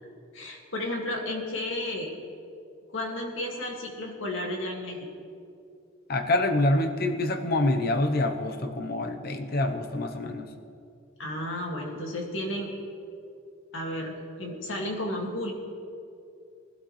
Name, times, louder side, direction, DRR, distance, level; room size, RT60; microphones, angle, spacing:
voice 1, 0.3-2.1 2.9-5.1 11.2-12.7 13.7-15.5, left 1 dB, 70° left, 0 dB, 2.2 m, -33 dB
voice 2, 6.1-10.5, left 1 dB, 50° left, 6 dB, 0.8 m, -26 dB
20.5 x 12.0 x 3.2 m, 2.5 s
head